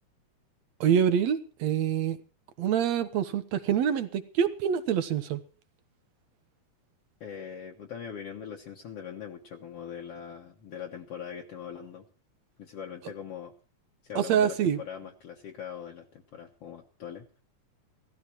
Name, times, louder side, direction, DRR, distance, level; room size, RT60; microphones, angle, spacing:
voice 1, 0.8-2.2 2.6-5.4 14.2-14.8, right 8 dB, 65° right, 11 dB, 2.2 m, -26 dB
voice 2, 7.2-12.0 12.6-13.5 14.0-17.3, left 8 dB, 60° left, 0 dB, 2.1 m, -41 dB
17.0 x 13.5 x 4.6 m, 0.38 s
omnidirectional pair, 3.5 m